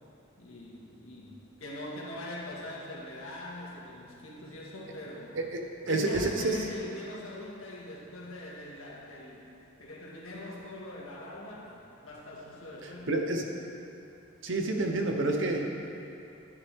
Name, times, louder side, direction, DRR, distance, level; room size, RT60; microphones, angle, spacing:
voice 1, 0.4-5.4 5.9-13.2, left 1 dB, 85° left, -4 dB, 1.9 m, -42 dB
voice 2, 5.9-6.6 13.1-13.4 14.4-15.6, right 2 dB, 65° right, 2 dB, 1.0 m, -28 dB
10.5 x 10.0 x 3.6 m, 2.7 s
head